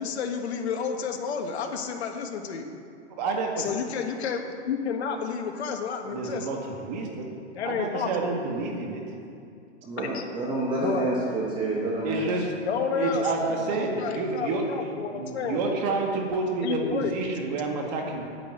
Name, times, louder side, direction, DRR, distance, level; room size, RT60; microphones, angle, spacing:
voice 1, 0.0-2.7 3.6-6.6 7.5-8.1 10.1-10.2 10.6-11.1 12.7-16.0 16.6-17.1, left 6 dB, 65° left, 3 dB, 1.7 m, -31 dB
voice 2, 3.2-3.7 6.1-7.3 7.6-9.0 12.0-12.5 12.9-18.3, right 3 dB, 35° right, 1 dB, 1.9 m, -29 dB
voice 3, 9.8-12.3, right 2 dB, 15° right, -4 dB, 1.1 m, -28 dB
9.5 x 8.7 x 7.9 m, 2.4 s
hypercardioid pair, 160°, 35 cm